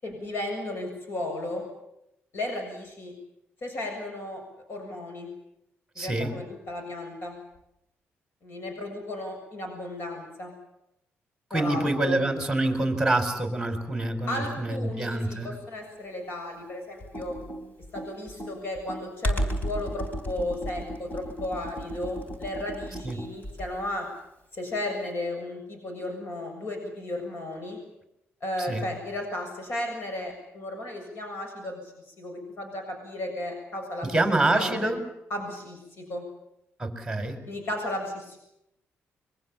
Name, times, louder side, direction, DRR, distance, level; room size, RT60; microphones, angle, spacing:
voice 1, 0.0-1.6 2.3-3.1 3.6-4.4 4.7-5.3 6.0-7.3 8.4-10.5 11.5-12.2 14.3-17.4 17.9-24.1 24.5-27.8 28.4-34.1 34.5-34.9 35.3-36.2 37.5-38.4, left 1 dB, 55° left, 3 dB, 7.1 m, -34 dB
voice 2, 6.0-6.3 11.5-15.6 23.0-23.2 28.6-28.8 34.0-35.0 36.8-37.4, right 2 dB, 5° right, 6 dB, 4.7 m, -26 dB
Computer keyboard, 17.0-23.9, equal, 40° left, 3.9 m, -33 dB
26.0 x 23.5 x 7.3 m, 0.82 s
cardioid pair, 125°, 5 cm